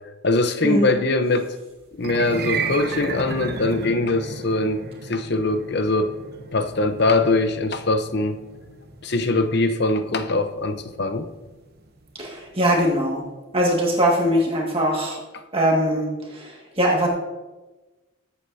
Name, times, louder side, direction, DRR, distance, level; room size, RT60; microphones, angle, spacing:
voice 1, 0.2-1.5 1.9-6.1 6.5-8.4 9.0-11.3, left 2 dB, 55° left, 8 dB, 0.9 m, -22 dB
sound 1, 1.9-12.3, right 4 dB, 50° right, 0.9 m, -34 dB
voice 2, 12.2-13.2 13.5-15.2 15.5-17.1, equal, 30° right, -2 dB, 1.9 m, -21 dB
21.0 x 8.3 x 2.8 m, 1.2 s
head